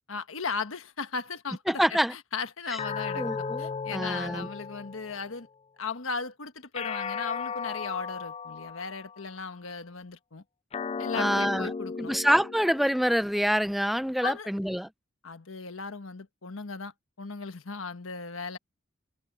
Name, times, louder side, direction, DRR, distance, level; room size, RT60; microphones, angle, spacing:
voice 1, 0.1-1.8 2.1-3.3 3.6-5.5 5.8-10.4 11.0-12.1 14.2-14.5 15.2-16.9 17.2-18.6, left 5 dB, 85° left, 1.3 m, -36 dB
voice 2, 1.7-2.1 2.7-2.8 3.1-4.5 11.1-14.9, equal, ahead, 0.7 m, -26 dB
sound 1, 2.8-5.4 6.7-9.3 10.7-13.3, left 5 dB, 30° left, 0.4 m, -36 dB
head